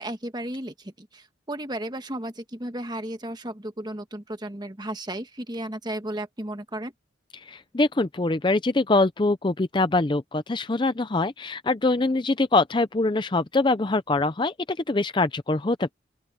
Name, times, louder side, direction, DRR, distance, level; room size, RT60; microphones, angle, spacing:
voice 1, 0.0-6.9, right 1 dB, 20° right, 1.3 m, -34 dB
voice 2, 7.3-15.9, left 2 dB, 25° left, 0.5 m, -24 dB
open air
head